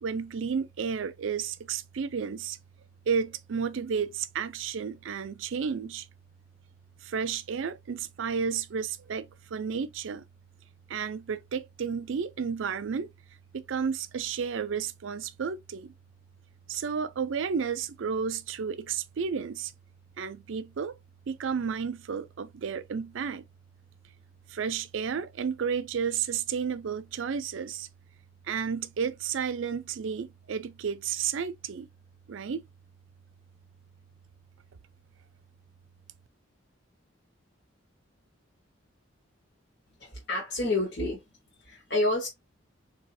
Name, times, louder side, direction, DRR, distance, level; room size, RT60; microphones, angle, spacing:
voice 1, 0.0-2.6 3.1-6.0 7.0-10.2 10.9-13.1 13.5-15.9 16.7-19.7 20.2-21.0 21.3-23.4 24.5-27.9 28.5-31.9 32.3-32.6, right 6 dB, 70° right, 0.4 m, -32 dB
voice 2, 40.0-41.2 41.6-42.3, left 2 dB, 55° left, 1.2 m, -29 dB
3.9 x 2.7 x 2.6 m
head